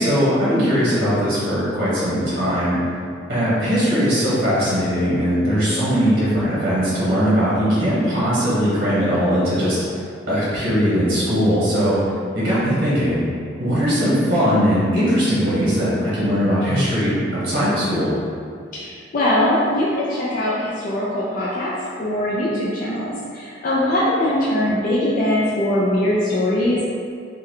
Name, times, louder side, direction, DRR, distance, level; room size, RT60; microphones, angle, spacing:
voice 1, 0.0-2.8 3.3-9.8 10.3-12.0 12.3-13.2 13.6-18.1, equal, 50° right, -9 dB, 1.1 m, -19 dB
voice 2, 18.7-26.8, left 1 dB, 45° left, -8 dB, 0.4 m, -21 dB
3.7 x 2.2 x 3.1 m, 2.3 s
head